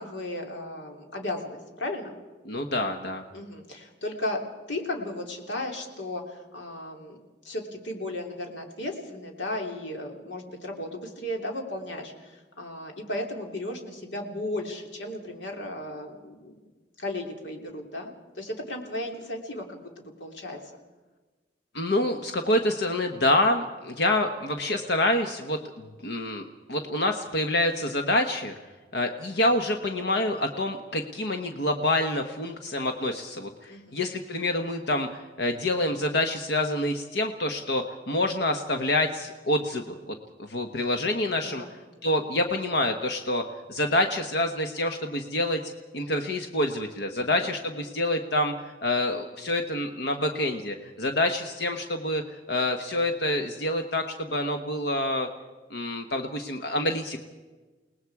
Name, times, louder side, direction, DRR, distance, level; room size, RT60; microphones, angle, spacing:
voice 1, 0.0-2.1 3.3-7.2 7.4-16.6 17.0-20.6 33.7-34.2 41.4-41.7 47.2-47.4, left 1 dB, 85° left, 2 dB, 3.0 m, -35 dB
voice 2, 2.4-3.2 21.7-28.5 28.9-41.6 42.0-45.6 45.9-55.3 55.7-57.2, left 1 dB, 70° left, 5 dB, 1.2 m, -27 dB
29.0 x 19.0 x 4.8 m, 1.3 s
head